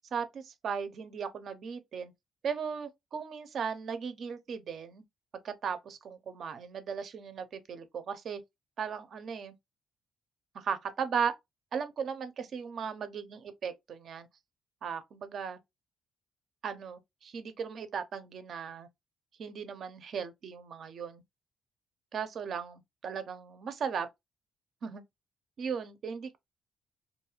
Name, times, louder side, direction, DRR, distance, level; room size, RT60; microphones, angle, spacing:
voice 1, 0.1-2.1 2.4-5.0 5.4-8.4 8.8-9.5 10.5-11.3 11.7-14.3 14.8-15.6 16.6-18.9 19.4-21.2 22.1-24.1 24.8-25.0 25.6-26.4, right 6 dB, 60° right, 0.6 m, -37 dB
2.6 x 2.4 x 3.0 m
cardioid pair, 90°, 0 cm